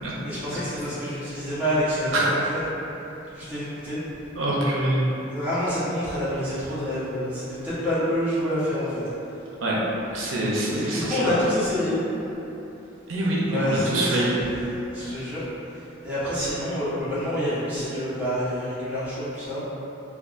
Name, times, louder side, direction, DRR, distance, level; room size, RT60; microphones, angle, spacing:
voice 1, 0.2-2.6 3.3-4.0 5.3-9.4 10.7-12.0 13.5-14.4 14.8-19.6, equal, 10° right, -13 dB, 0.9 m, -27 dB
voice 2, 4.3-5.1 9.6-9.8 10.1-11.4 13.1-14.3 15.1-15.2, right 1 dB, 90° right, -5 dB, 0.5 m, -25 dB
3.5 x 2.3 x 2.4 m, 3.0 s
head